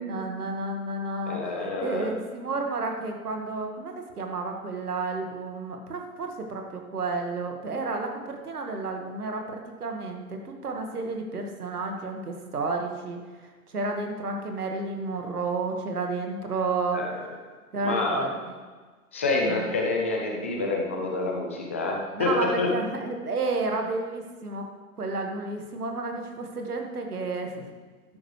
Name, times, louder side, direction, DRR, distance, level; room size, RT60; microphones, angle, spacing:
voice 1, 0.1-13.2 13.7-17.0 17.7-18.5 19.5-19.7 22.1-24.7 25.0-27.7, right 3 dB, 75° right, 3 dB, 1.9 m, -31 dB
voice 2, 1.3-2.1 16.9-17.1 17.8-18.2 19.1-22.7, left 3 dB, 10° left, 0 dB, 0.3 m, -28 dB
13.0 x 10.5 x 3.3 m, 1.4 s
figure-of-eight pair, 115°, 45 cm